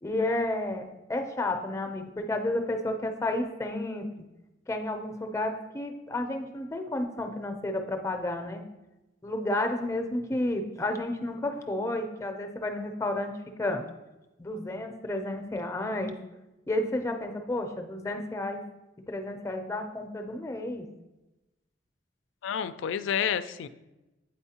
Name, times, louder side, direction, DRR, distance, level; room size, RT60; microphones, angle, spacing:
voice 1, 0.0-4.1 4.7-8.6 9.2-13.3 13.6-13.8 14.4-16.1 16.7-18.6 19.1-20.9, left 1 dB, 15° left, 5 dB, 0.5 m, -31 dB
voice 2, 22.4-23.7, left 8 dB, 80° left, 13 dB, 0.3 m, -29 dB
8.5 x 4.4 x 2.8 m, 1.0 s
head